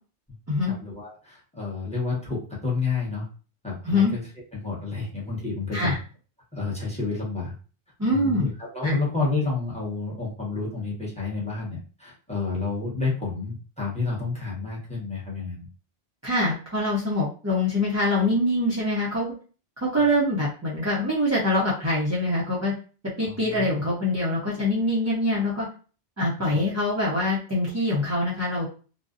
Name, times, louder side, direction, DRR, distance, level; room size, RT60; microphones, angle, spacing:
voice 1, 0.7-3.3 3.6-4.2 4.5-5.9 6.5-7.5 8.1-15.7 23.2-23.7 26.5-26.6, left 4 dB, 5° left, -4 dB, 0.8 m, -30 dB
voice 2, 8.0-8.5 8.8-8.9 16.2-19.3 19.8-22.7 23.2-25.7 26.2-28.6, left 1 dB, 20° right, -7 dB, 0.5 m, -24 dB
2.5 x 2.1 x 2.4 m, 0.37 s
omnidirectional pair, 1.1 m